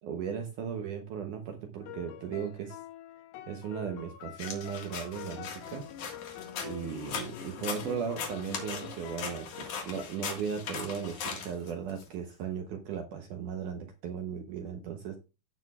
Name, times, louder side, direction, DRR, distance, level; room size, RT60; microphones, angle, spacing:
voice 1, 0.0-2.8 3.5-5.9 6.6-15.2, right 7 dB, 75° right, 5 dB, 1.9 m, -37 dB
sound 1, 1.8-10.1, left 12 dB, 90° left, 3.1 m, -46 dB
sound 2, 4.4-12.0, left 6 dB, 55° left, 2.7 m, -40 dB
16.5 x 6.1 x 2.3 m, 0.28 s
omnidirectional pair, 4.8 m